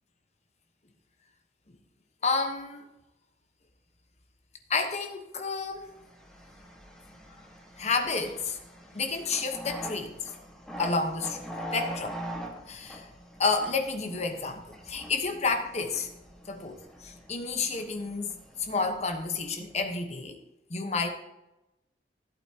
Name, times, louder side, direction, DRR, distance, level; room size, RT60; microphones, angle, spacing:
voice 1, 2.2-2.8 4.7-5.9 7.8-8.6 8.9-10.3 10.8-11.4 11.7-12.2 12.7-13.1 13.4-16.1 16.5-18.3 18.6-20.4 20.7-21.1, left 4 dB, 40° left, 4 dB, 1.2 m, -30 dB
sound 1, 5.8-19.7, equal, 5° left, 1.6 m, -43 dB
14.5 x 8.3 x 2.9 m, 0.94 s
head